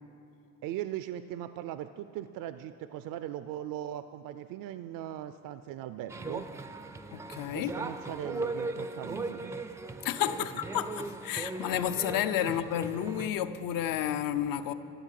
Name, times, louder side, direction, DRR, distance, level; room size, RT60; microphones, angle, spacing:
voice 1, 0.6-6.5 7.5-9.5 12.4-12.5, right 12 dB, 70° right, 0.5 m, -39 dB
sound 1, 6.1-13.3, right 3 dB, 10° right, 0.3 m, -38 dB
voice 2, 7.1-7.8 10.0-14.7, left 10 dB, 75° left, 0.7 m, -31 dB
13.0 x 8.1 x 9.2 m
cardioid pair, 155°, 34 cm